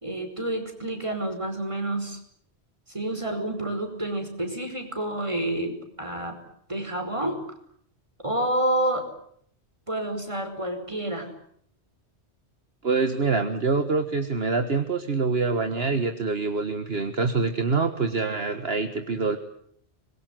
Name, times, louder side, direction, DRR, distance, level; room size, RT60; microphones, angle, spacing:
voice 1, 0.0-2.2 2.9-6.4 6.7-7.4 8.2-9.1 9.9-11.3, right 1 dB, 25° right, 6 dB, 5.1 m, -29 dB
voice 2, 12.8-19.4, right 4 dB, 60° right, 8 dB, 1.8 m, -25 dB
25.0 x 22.0 x 9.4 m, 0.67 s
omnidirectional pair, 1.1 m